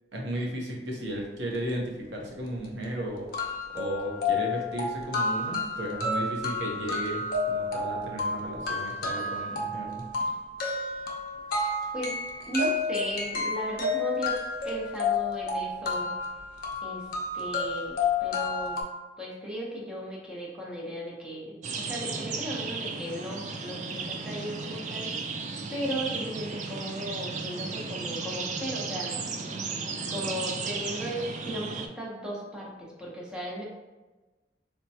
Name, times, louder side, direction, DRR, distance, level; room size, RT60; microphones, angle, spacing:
voice 1, 0.1-3.4 3.7-10.0, equal, 80° right, -1 dB, 0.8 m, -34 dB
sound 1, 2.3-2.4 2.8-2.9 3.3-18.8, left 3 dB, 55° left, 0.6 m, -31 dB
voice 2, 12.5-14.4 14.6-16.1 16.8-17.1 17.3-18.8 19.2-25.1 25.7-29.2 30.1-33.6, equal, 5° right, -4 dB, 0.7 m, -36 dB
sound 2, 21.6-31.9, right 4 dB, 40° right, 0.3 m, -34 dB
4.3 x 2.2 x 2.7 m, 1.2 s
head